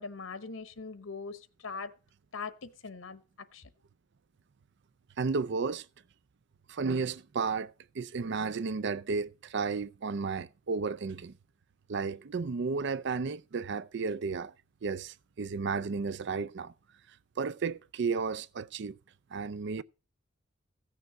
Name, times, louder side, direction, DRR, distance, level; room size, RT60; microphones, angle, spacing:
voice 1, 0.0-1.9 2.3-3.2 3.5-3.7, left 4 dB, 85° left, 1.0 m, -41 dB
voice 2, 5.2-5.9 6.7-11.3 11.9-14.5 14.8-16.7 17.4-19.0 19.3-19.8, right 4 dB, 60° right, 0.5 m, -33 dB
16.0 x 6.8 x 3.7 m
head